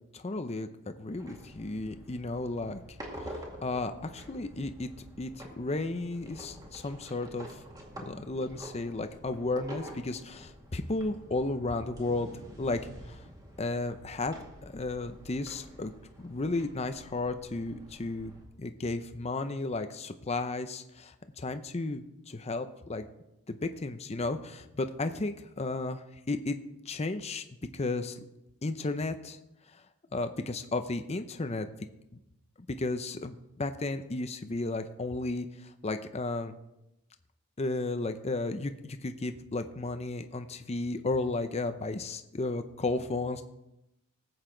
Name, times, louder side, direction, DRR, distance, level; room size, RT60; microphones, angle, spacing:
voice 1, 0.1-3.3 3.6-4.9 5.2-7.6 8.0-12.3 12.6-12.8 13.1-13.2 13.6-14.3 14.6-15.9 16.2-18.3 18.6-23.1 23.5-26.6 26.9-27.4 27.7-28.2 28.6-29.4 30.1-31.7 32.7-36.5 37.6-43.4, left 2 dB, 30° left, 8 dB, 0.6 m, -33 dB
sound 1, 1.1-18.4, equal, 15° right, 2.1 m, -48 dB
19.0 x 8.0 x 3.8 m, 0.89 s
head